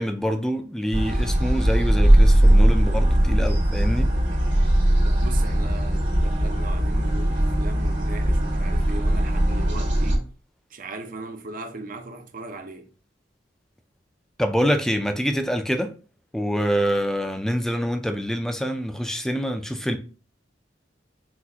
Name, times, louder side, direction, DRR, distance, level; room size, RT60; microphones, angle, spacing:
voice 1, 0.0-4.1 14.4-15.9 16.3-20.0, equal, 5° left, 0.4 m, -25 dB
sound 1, 0.9-10.2, right 1 dB, 80° right, 2.0 m, -19 dB
voice 2, 5.0-10.3 10.7-12.9, right 2 dB, 50° right, 0.7 m, -38 dB
6.0 x 2.5 x 2.8 m
head